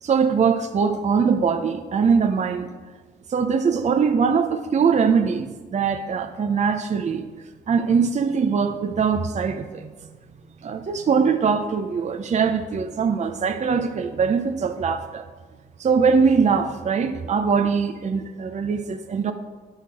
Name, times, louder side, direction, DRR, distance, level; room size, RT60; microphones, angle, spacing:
voice 1, 0.0-2.7 3.3-7.2 7.7-9.9 10.6-15.2 15.8-19.3, right 6 dB, 40° right, 7 dB, 0.7 m, -22 dB
11.0 x 6.4 x 4.7 m, 1.3 s
supercardioid pair, 60°, 18 cm